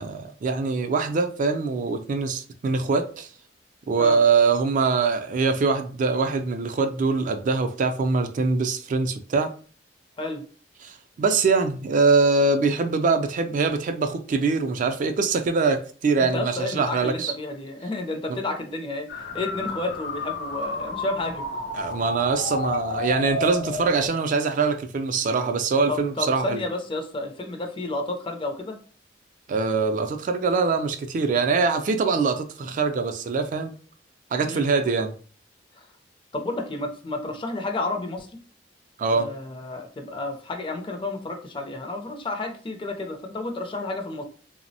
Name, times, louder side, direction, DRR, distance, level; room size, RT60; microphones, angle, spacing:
voice 1, 0.0-3.3 3.9-9.5 10.8-17.3 18.3-18.4 21.7-26.6 29.5-33.7 34.3-35.1 39.0-39.3, right 4 dB, 45° right, 0.3 m, -23 dB
voice 2, 16.2-21.6 25.9-28.8 34.5-34.7 35.8-35.9 36.3-38.3 39.1-44.2, left 2 dB, 30° left, 0.4 m, -31 dB
sound 1, 19.1-24.1, left 2 dB, 85° left, 0.7 m, -31 dB
3.3 x 2.0 x 2.6 m
head